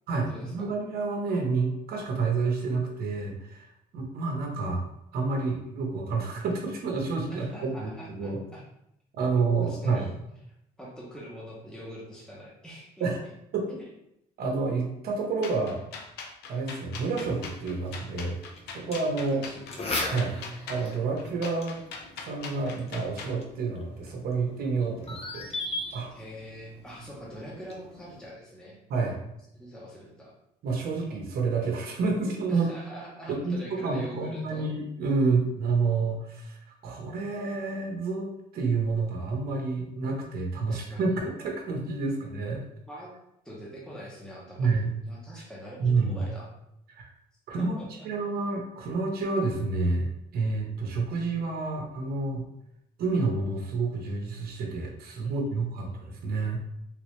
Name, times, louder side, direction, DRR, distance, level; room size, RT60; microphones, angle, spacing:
voice 1, 0.1-3.7 3.9-4.8 5.1-7.9 8.2-8.4 9.1-10.0 13.0-13.2 13.5-13.8 14.4-15.8 16.5-18.4 18.7-19.4 20.1-20.3 20.7-21.8 22.2-25.5 25.9-26.1 28.9-29.2 30.6-32.7 33.3-36.6 36.8-38.3 38.5-42.6 44.6-44.9 45.8-46.3 46.9-47.1 47.5-50.1 50.3-52.4 53.0-56.6, right 4 dB, 65° right, 0 dB, 0.9 m, -29 dB
voice 2, 7.3-8.6 9.6-10.4 10.8-13.1 19.3-19.8 20.1-20.6 26.1-28.8 29.5-30.3 32.5-34.7 40.6-41.2 42.9-43.1 43.4-46.5 47.6-48.1 55.2-56.0, equal, 5° left, -5 dB, 1.0 m, -44 dB
sound 1, 15.4-23.4, left 5 dB, 75° left, 0.6 m, -41 dB
sound 2, 17.2-28.3, left 2 dB, 35° left, 0.8 m, -40 dB
3.4 x 3.1 x 3.1 m, 0.80 s
cardioid pair, 110°, 17 cm